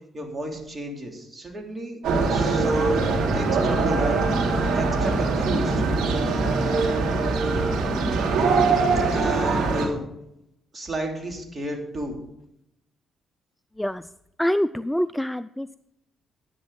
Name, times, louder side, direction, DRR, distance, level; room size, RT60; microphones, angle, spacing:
voice 1, 0.1-4.2 4.7-5.8 6.6-6.7 9.1-10.0 10.7-12.2, right 1 dB, 25° right, 1 dB, 3.1 m, -32 dB
sound 1, 2.0-9.9, right 3 dB, 85° right, 3.2 m, -22 dB
voice 2, 14.4-15.7, equal, 5° left, 14 dB, 0.3 m, -25 dB
11.0 x 10.5 x 4.1 m, 0.80 s
cardioid pair, 90°, 0 cm